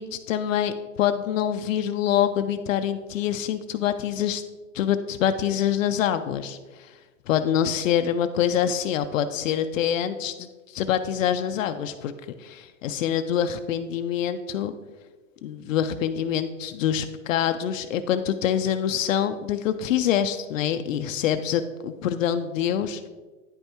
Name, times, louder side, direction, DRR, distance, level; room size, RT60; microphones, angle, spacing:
voice 1, 0.0-4.4 4.7-7.0 7.3-12.1 12.4-14.7 15.4-23.1, left 9 dB, 75° left, 8 dB, 0.5 m, -25 dB
9.7 x 5.4 x 2.9 m, 1.3 s
supercardioid pair, 160°, 40 cm